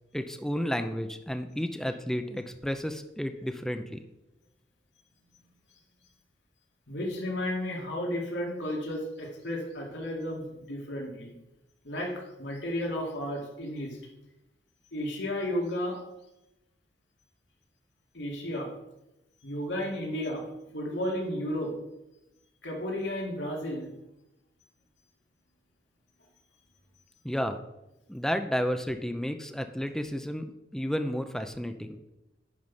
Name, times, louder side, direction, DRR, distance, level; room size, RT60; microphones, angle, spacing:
voice 1, 0.1-4.0 27.2-27.6 28.1-32.0, equal, 5° left, 7 dB, 0.6 m, -32 dB
voice 2, 6.9-11.3 11.8-14.0 14.9-16.0 18.1-18.7 19.4-20.4 20.7-21.7 22.6-23.9, left 1 dB, 75° left, -1 dB, 2.3 m, -33 dB
10.5 x 4.7 x 5.6 m, 0.94 s
head